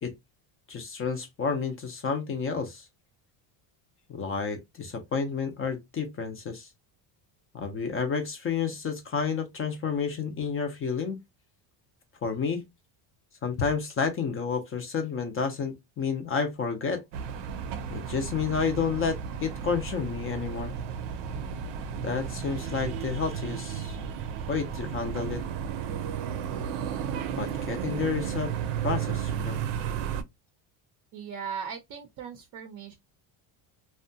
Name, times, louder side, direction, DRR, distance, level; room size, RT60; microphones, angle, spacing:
voice 1, 0.7-2.9 4.1-6.7 7.5-11.2 12.2-12.6 13.4-17.0 17.9-20.7 22.0-24.0 24.5-25.4 27.4-28.5 28.8-29.6, left 5 dB, 30° left, 0.4 m, -30 dB
sound 1, 17.1-30.2, right 8 dB, 90° right, 0.6 m, -33 dB
voice 2, 31.1-33.0, right 7 dB, 40° right, 0.5 m, -38 dB
2.6 x 2.2 x 2.5 m
cardioid pair, 145°, 48 cm